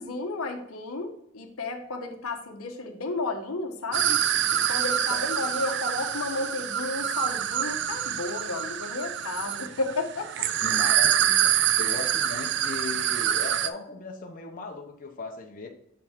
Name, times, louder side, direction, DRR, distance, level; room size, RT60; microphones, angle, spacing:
voice 1, 0.0-4.2 4.5-10.5 11.7-11.8, left 3 dB, 75° left, 5 dB, 1.0 m, -33 dB
sound 1, 3.9-13.7, right 10 dB, 50° right, 0.4 m, -26 dB
voice 2, 5.1-5.5 10.6-15.7, left 3 dB, 40° left, 1 dB, 0.9 m, -38 dB
6.9 x 5.3 x 3.6 m, 0.72 s
head